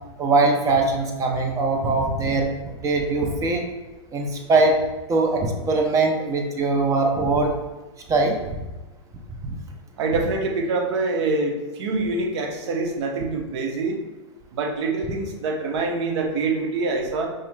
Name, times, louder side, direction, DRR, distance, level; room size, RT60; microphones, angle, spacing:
voice 1, 0.2-3.6 4.1-4.8 5.1-7.5 8.1-8.3 9.4-9.6, right 3 dB, 20° right, 2 dB, 0.6 m, -21 dB
voice 2, 10.0-14.0 14.5-17.3, right 3 dB, 65° right, 2 dB, 0.8 m, -25 dB
4.8 x 2.9 x 2.2 m, 1.2 s
hypercardioid pair, 110°, 15 cm